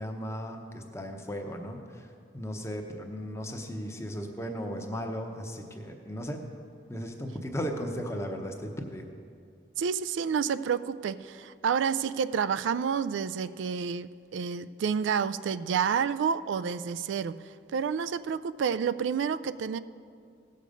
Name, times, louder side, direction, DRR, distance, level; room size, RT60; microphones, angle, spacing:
voice 1, 0.0-6.4 6.9-9.1, equal, 15° left, 3 dB, 0.8 m, -36 dB
voice 2, 9.8-19.8, right 6 dB, 85° right, 14 dB, 0.3 m, -29 dB
16.5 x 6.6 x 5.1 m, 2.3 s
head